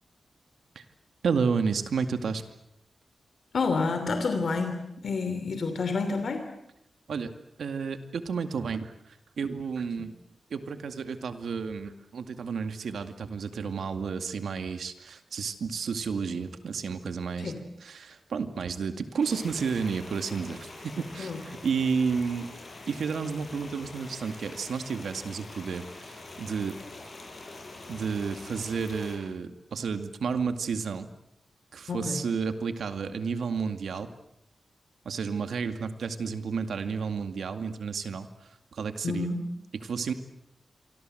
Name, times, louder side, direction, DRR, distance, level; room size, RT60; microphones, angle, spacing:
voice 1, 1.2-2.5 7.1-7.3 7.6-8.9 9.4-10.1 10.5-17.5 17.8-22.5 22.9-26.8 27.9-31.1 31.7-34.1 35.0-38.3 38.7-39.3 39.7-40.1, right 5 dB, 85° right, 8 dB, 2.2 m, -31 dB
voice 2, 3.5-6.4 17.4-17.6 21.2-21.4 31.9-32.2 39.0-39.4, left 4 dB, 60° left, 7 dB, 3.1 m, -29 dB
sound 1, 19.2-29.2, left 2 dB, 35° left, 7.5 m, -45 dB
27.5 x 25.0 x 7.9 m, 0.83 s
wide cardioid pair, 170°, 0 cm